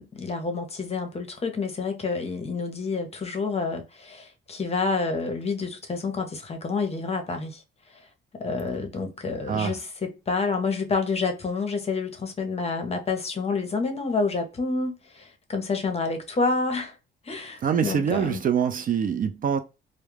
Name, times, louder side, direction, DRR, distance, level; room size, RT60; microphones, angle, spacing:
voice 1, 0.0-7.6 8.4-16.9 17.2-18.4, left 4 dB, 30° left, 0.7 m, -28 dB
voice 2, 9.5-9.8 17.6-19.6, right 7 dB, 45° right, 0.4 m, -24 dB
2.2 x 2.0 x 3.1 m
cardioid pair, 90°, 20 cm